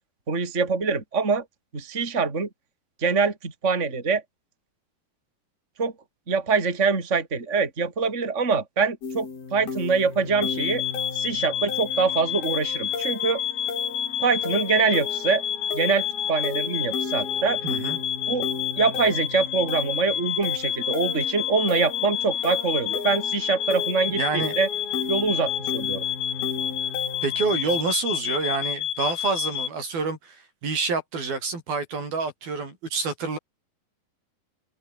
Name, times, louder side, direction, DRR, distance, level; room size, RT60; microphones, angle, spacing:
voice 1, 0.3-1.4 1.7-2.5 3.0-4.2 5.8-5.9 6.3-10.8 11.1-13.4 14.2-15.4 15.7-17.6 18.3-18.5 18.8-24.7 25.1-26.1, right 5 dB, 20° right, 3.7 m, -24 dB
sound 1, 9.0-27.8, left 4 dB, 75° left, 8.4 m, -36 dB
sound 2, 10.4-29.7, left 10 dB, 60° left, 3.1 m, -29 dB
voice 2, 17.6-18.0 24.1-24.6 27.2-33.4, right 4 dB, 75° right, 8.9 m, -28 dB
omnidirectional pair, 4.3 m